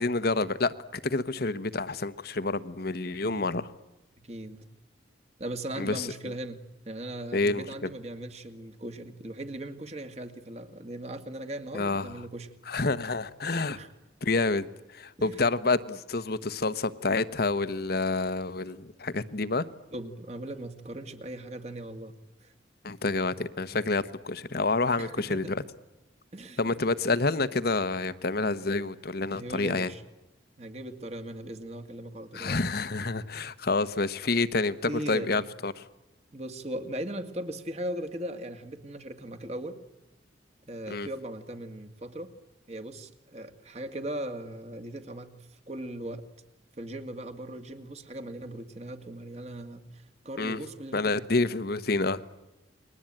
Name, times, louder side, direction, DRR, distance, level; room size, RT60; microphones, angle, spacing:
voice 1, 0.0-3.7 5.8-6.1 7.3-7.7 11.7-12.2 12.7-13.8 14.2-19.6 22.8-25.6 26.6-29.9 32.3-35.7 40.9-41.1 50.4-50.6 50.9-52.2, left 3 dB, 55° left, 13 dB, 1.2 m, -28 dB
voice 2, 3.1-3.5 4.2-4.7 5.4-12.5 13.7-13.9 15.2-15.4 19.9-22.1 22.4-22.5 25.0-25.5 26.3-26.6 29.3-30.0 30.6-32.6 34.9-35.4 36.3-39.8 40.7-42.3 42.7-46.2 46.8-51.4, right 1 dB, 35° right, 7 dB, 2.1 m, -39 dB
29.5 x 22.0 x 9.0 m, 1.0 s
head